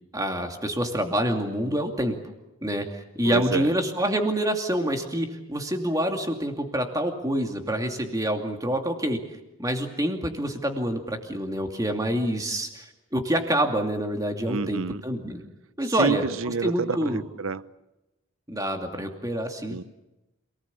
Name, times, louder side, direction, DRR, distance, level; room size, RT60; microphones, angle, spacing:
voice 1, 0.1-2.2 2.6-9.2 9.6-15.4 15.8-16.3 16.6-17.2 18.5-19.8, right 1 dB, 15° right, 4 dB, 2.6 m, -27 dB
voice 2, 3.2-3.7 14.5-15.0 16.0-17.6 19.7-19.8, right 4 dB, 70° right, 16 dB, 0.8 m, -28 dB
27.5 x 19.0 x 8.4 m, 0.98 s
head